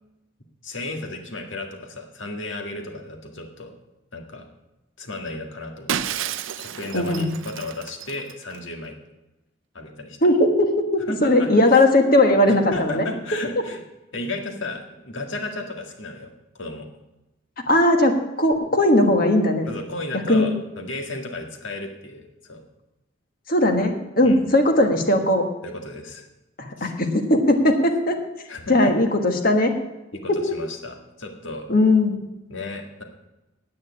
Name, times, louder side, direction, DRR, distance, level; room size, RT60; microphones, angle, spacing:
voice 1, 0.6-3.7 4.1-4.4 5.0-6.2 6.6-8.9 9.7-10.2 11.1-11.7 12.4-13.8 14.1-16.9 19.7-22.6 24.2-24.5 25.6-26.3 26.8-26.9 28.5-28.9 30.1-31.7 32.5-33.0, left 2 dB, 70° left, 3 dB, 1.8 m, -34 dB
Shatter, 5.9-8.6, right 9 dB, 70° right, 0.5 m, -31 dB
voice 2, 6.9-7.3 10.2-13.0 17.7-19.7 20.3-20.5 23.5-25.4 26.6-28.2 28.7-29.8 30.3-30.4 31.7-32.2, left 1 dB, 45° left, 5 dB, 1.4 m, -18 dB
9.3 x 8.8 x 8.6 m, 0.99 s
head